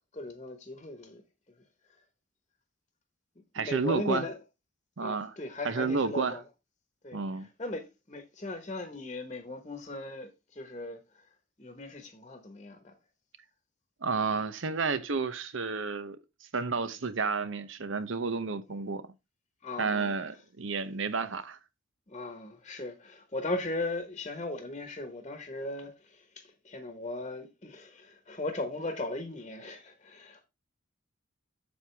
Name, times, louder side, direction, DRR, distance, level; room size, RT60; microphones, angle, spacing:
voice 1, 0.1-1.2 1.9-2.0 3.5-4.4 5.0-6.4 7.0-11.2 11.6-12.9 16.8-17.0 19.6-20.2 22.1-30.5, left 2 dB, 30° left, 1.2 m, -38 dB
voice 2, 3.5-4.3 5.0-5.3 5.6-6.4 7.1-7.5 14.0-16.2 16.5-19.1 19.8-21.6, right 4 dB, 70° right, 0.8 m, -31 dB
7.9 x 7.1 x 3.4 m
head